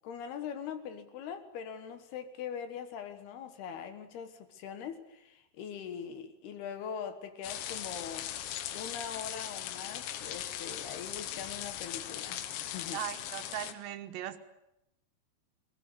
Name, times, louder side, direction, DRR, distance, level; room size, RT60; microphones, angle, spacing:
voice 1, 0.0-8.3 8.7-13.0, left 7 dB, 70° left, 3.1 m, -42 dB
sound 1, 7.4-13.7, left 11 dB, 85° left, 3.5 m, -39 dB
voice 2, 12.9-14.4, right 12 dB, 80° right, 3.3 m, -38 dB
19.5 x 19.0 x 9.8 m
omnidirectional pair, 5.1 m